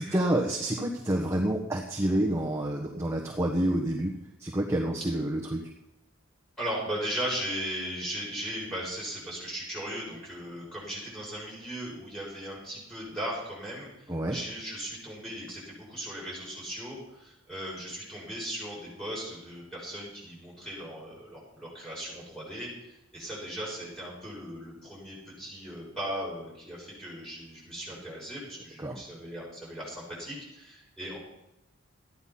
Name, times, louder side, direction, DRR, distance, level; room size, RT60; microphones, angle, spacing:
voice 1, 0.0-5.6 14.1-14.4 28.8-29.0, right 1 dB, 15° right, -1 dB, 1.3 m, -28 dB
voice 2, 6.6-31.2, equal, 5° left, -6 dB, 7.1 m, -37 dB
14.5 x 10.5 x 5.9 m, 0.89 s
head